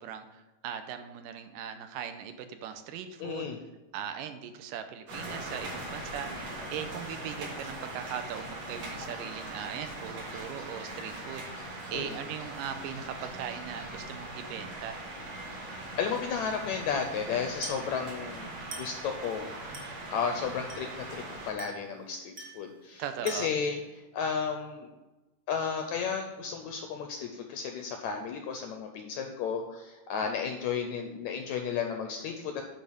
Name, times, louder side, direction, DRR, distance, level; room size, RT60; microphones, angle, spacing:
voice 1, 0.0-3.5 3.9-6.3 6.7-11.5 11.9-15.0 23.0-23.5, right 8 dB, 80° right, 8 dB, 2.3 m, -39 dB
voice 2, 3.2-3.6 11.9-12.2 16.0-19.6 20.1-23.8 24.1-24.9 25.5-32.6, left 6 dB, 80° left, 5 dB, 1.7 m, -33 dB
sound 1, 5.1-21.5, right 1 dB, 65° right, 4.1 m, -41 dB
Glass, 17.6-18.0 18.7-19.1 19.7-20.0 20.7-21.0 21.6-21.9 22.4-22.7 23.3-23.7, right 3 dB, 45° right, 1.4 m, -44 dB
10.0 x 4.2 x 6.4 m, 1.1 s
omnidirectional pair, 3.9 m